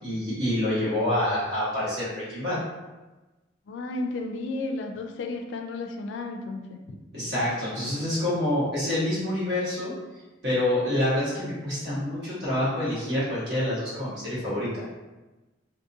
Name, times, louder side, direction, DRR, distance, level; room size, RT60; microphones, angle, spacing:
voice 1, 0.0-2.6 7.1-9.9 10.4-14.9, left 1 dB, 60° right, -9 dB, 1.4 m, -27 dB
voice 2, 3.7-6.8, left 2 dB, 65° left, 4 dB, 0.3 m, -33 dB
2.6 x 2.5 x 2.6 m, 1.1 s
head